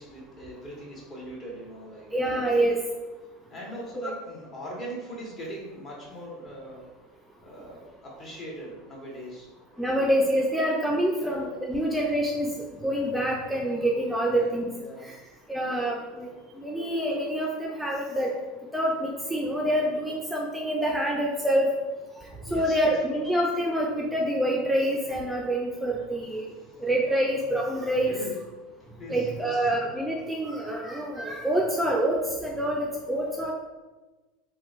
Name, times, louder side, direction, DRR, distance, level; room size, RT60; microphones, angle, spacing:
voice 1, 0.0-2.7 3.5-6.8 7.4-9.5 11.1-11.4 14.3-15.1 22.5-23.2 26.6-26.8 28.1-28.3 29.0-29.7, equal, 40° left, -4 dB, 1.2 m, -41 dB
voice 2, 2.1-2.8 4.0-4.1 9.8-12.5 12.8-14.6 15.0-15.1 15.5-16.3 16.6-18.3 18.7-21.7 22.5-26.5 26.8-28.1 29.1-33.5, right 1 dB, 5° right, -2 dB, 0.4 m, -26 dB
3.6 x 2.2 x 2.4 m, 1.2 s
hypercardioid pair, 80°, 0 cm